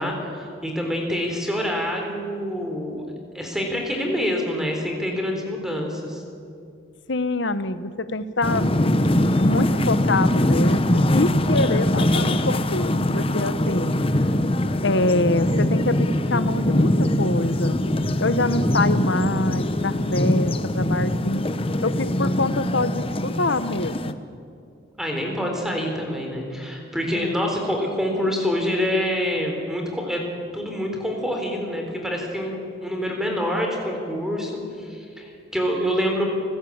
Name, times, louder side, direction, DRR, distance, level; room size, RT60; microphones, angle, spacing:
voice 1, 0.0-3.0 3.3-6.2 25.0-30.2 30.5-36.2, equal, 5° right, 2 dB, 3.7 m, -26 dB
voice 2, 7.1-8.7 9.4-14.0 14.8-17.8 18.2-21.4 21.8-24.2 27.1-27.4, left 2 dB, 65° left, 13 dB, 1.1 m, -25 dB
sound 1, 8.4-24.1, left 1 dB, 30° left, 0.9 m, -22 dB
29.5 x 15.5 x 8.8 m, 2.4 s
head